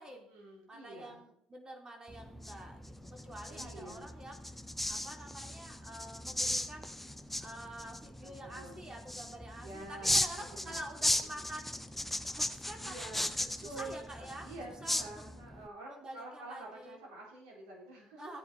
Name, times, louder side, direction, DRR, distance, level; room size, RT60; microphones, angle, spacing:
voice 1, 0.1-1.2 3.5-4.2 8.2-8.8 9.6-11.4 12.8-13.3 13.6-18.4, right 2 dB, 70° right, -3 dB, 4.5 m, -48 dB
voice 2, 0.7-2.8 3.1-4.6 4.9-6.9 7.4-11.7 12.3-13.0 13.6-14.5 14.8-15.0 15.9-17.0 18.2-18.4, right 1 dB, 25° right, 2 dB, 3.5 m, -47 dB
sound 1, 2.1-15.7, left 1 dB, 5° left, 1.1 m, -37 dB
15.0 x 9.1 x 4.4 m, 0.67 s
figure-of-eight pair, 50°, 3 cm